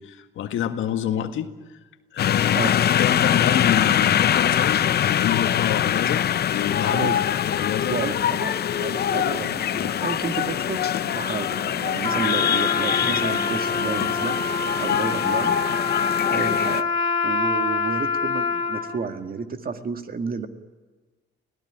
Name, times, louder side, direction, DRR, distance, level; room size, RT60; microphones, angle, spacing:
voice 1, 0.0-1.5 2.1-2.7 3.0-7.1 7.4-8.0 9.8-9.9 14.9-15.0, left 10 dB, 80° left, 7 dB, 1.7 m, -27 dB
sound 1, 2.2-16.8, left 10 dB, 55° left, 0.7 m, -23 dB
voice 2, 6.9-7.3 7.9-8.5 8.8-14.4 14.8-15.6 16.3-20.5, right 5 dB, 45° right, 7 dB, 1.9 m, -31 dB
Trumpet, 12.0-19.0, left 5 dB, 25° left, 3.6 m, -25 dB
24.0 x 16.5 x 10.0 m, 1.3 s
cardioid pair, 90°, 20 cm